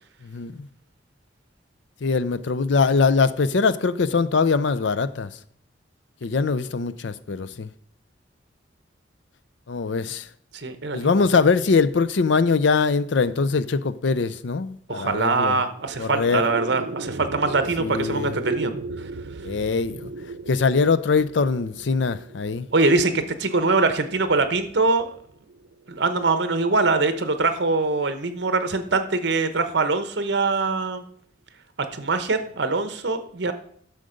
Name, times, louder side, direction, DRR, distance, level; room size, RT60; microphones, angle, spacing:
voice 1, 0.2-0.7 2.0-5.3 6.2-7.7 9.7-10.3 10.9-15.6 16.0-16.4 17.8-18.3 19.4-20.1 20.5-22.7, left 4 dB, 70° left, 0.5 m, -22 dB
voice 2, 10.5-11.1 14.9-18.7 19.0-19.1 22.7-23.1 23.4-25.1 25.9-31.0 31.9-33.5, right 3 dB, 65° right, 1.0 m, -23 dB
sound 1, 15.5-26.0, right 3 dB, 90° right, 0.7 m, -36 dB
11.5 x 6.6 x 5.1 m
head